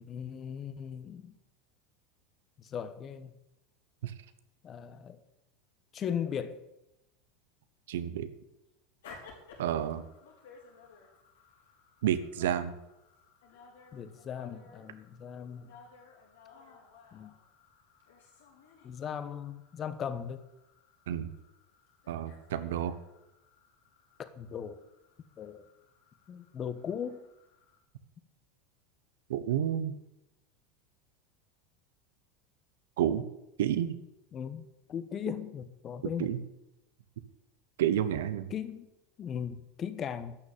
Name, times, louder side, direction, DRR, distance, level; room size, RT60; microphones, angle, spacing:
voice 1, 0.0-1.3 2.6-3.3 4.6-5.2 5.9-6.6 13.9-15.7 17.1-17.3 18.8-20.4 24.2-24.8 25.4-25.6 26.3-27.2 34.3-36.3 38.5-38.9 39.2-40.4, left 8 dB, 35° left, 12 dB, 1.3 m, -38 dB
voice 2, 7.9-8.3 9.6-10.0 12.0-12.7 21.1-21.3 22.1-23.0 29.3-29.9 33.0-33.3 33.6-34.0 36.0-36.4 37.8-38.5, right 10 dB, 80° right, 13 dB, 1.0 m, -30 dB
sound 1, 9.0-27.8, left 4 dB, 85° left, 4.5 m, -57 dB
12.0 x 6.5 x 8.6 m, 0.91 s
hypercardioid pair, 95°, 0 cm